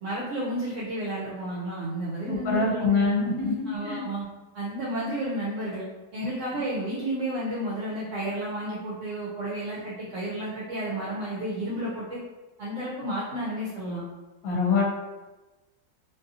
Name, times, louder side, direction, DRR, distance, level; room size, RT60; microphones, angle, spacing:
voice 1, 0.0-2.9 3.7-4.2 4.5-12.2 12.6-14.0, right 1 dB, 65° right, -7 dB, 0.9 m, -32 dB
voice 2, 2.3-4.0 14.4-14.8, left 4 dB, 70° left, -2 dB, 1.1 m, -25 dB
2.7 x 2.5 x 2.5 m, 1.1 s
omnidirectional pair, 1.6 m